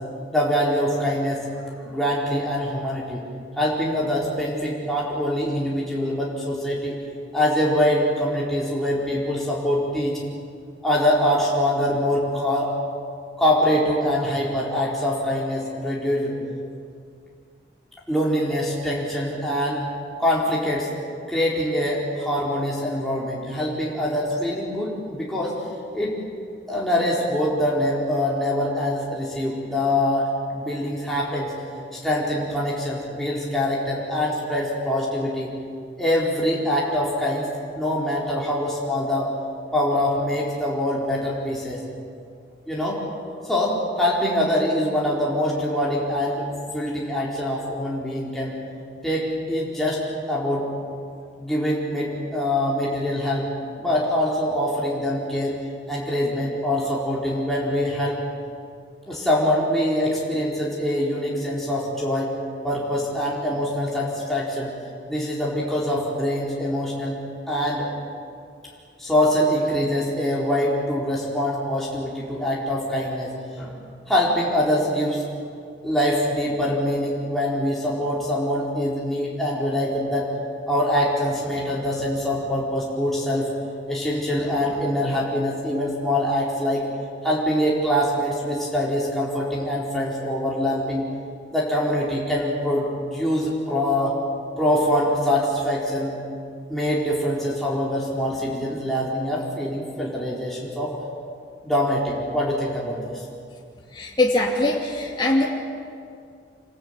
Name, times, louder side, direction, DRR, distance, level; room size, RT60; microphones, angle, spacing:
voice 1, 0.3-1.4 1.8-3.2 3.6-7.0 7.3-10.2 10.8-12.7 13.4-16.4 18.1-19.9 20.2-20.9 21.3-25.5 25.9-26.1 26.7-31.5 31.9-35.5 36.0-37.5 37.8-39.3 39.7-41.8 42.7-43.0 43.4-46.5 46.7-48.5 49.0-50.0 50.3-50.7 51.4-53.5 53.8-55.5 55.9-58.2 59.1-62.3 62.6-64.7 65.1-67.2 67.5-67.9 69.0-73.8 74.1-75.2 75.8-80.3 80.7-83.5 83.9-86.8 87.2-91.0 91.5-94.1 94.6-96.1 96.7-100.9 101.6-103.0, left 1 dB, ahead, -6 dB, 4.2 m, -24 dB
voice 2, 103.9-105.5, left 2 dB, 25° left, -3 dB, 2.5 m, -22 dB
27.0 x 22.0 x 9.0 m, 2.3 s
head